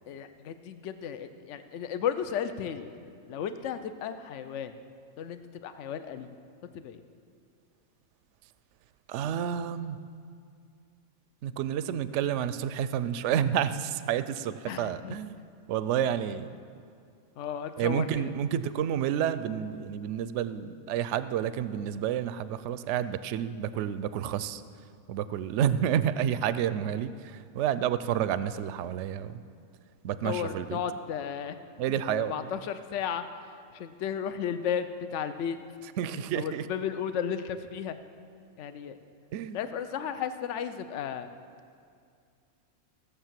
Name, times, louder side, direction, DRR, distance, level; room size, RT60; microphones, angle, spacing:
voice 1, 0.1-2.9 3.3-4.7 5.2-6.3 6.7-7.0 14.7-15.2 17.4-18.3 30.2-31.6 32.1-33.2 33.7-35.6 36.1-38.0 38.6-39.0 39.5-41.3, left 8 dB, 65° left, 10 dB, 0.9 m, -34 dB
voice 2, 9.1-10.0 11.4-15.4 15.7-16.5 17.8-24.6 25.1-29.4 30.0-30.8 31.8-32.3 36.0-36.7 39.3-39.6, right 9 dB, 65° right, 14 dB, 0.8 m, -30 dB
16.5 x 6.8 x 7.4 m, 2.3 s
omnidirectional pair, 1.4 m